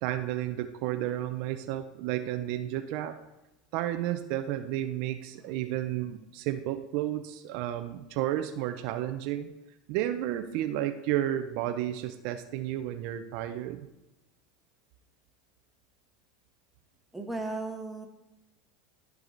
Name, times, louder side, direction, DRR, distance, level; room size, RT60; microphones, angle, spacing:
voice 1, 0.0-3.2 3.7-9.5 9.9-13.9, right 12 dB, 65° right, 8 dB, 0.6 m, -32 dB
voice 2, 17.1-18.1, right 2 dB, 5° right, 1 dB, 1.6 m, -35 dB
13.5 x 4.8 x 3.9 m, 0.97 s
supercardioid pair, 115°, 0 cm